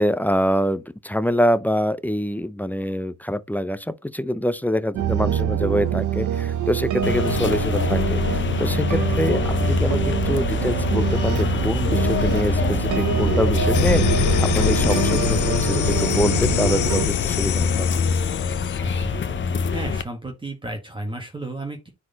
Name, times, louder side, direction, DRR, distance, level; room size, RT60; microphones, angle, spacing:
voice 1, 0.0-9.4 9.7-18.0, equal, 5° left, 0.5 m, -25 dB
sound 1, 4.9-17.1, right 9 dB, 75° right, 1.0 m, -25 dB
sound 2, 7.0-20.0, left 5 dB, 40° left, 0.9 m, -24 dB
sound 3, 13.7-18.8, left 11 dB, 80° left, 0.8 m, -24 dB
voice 2, 18.8-19.4 19.7-21.9, right 2 dB, 15° right, 1.9 m, -33 dB
9.4 x 4.4 x 4.1 m
cardioid pair, 90°, 30 cm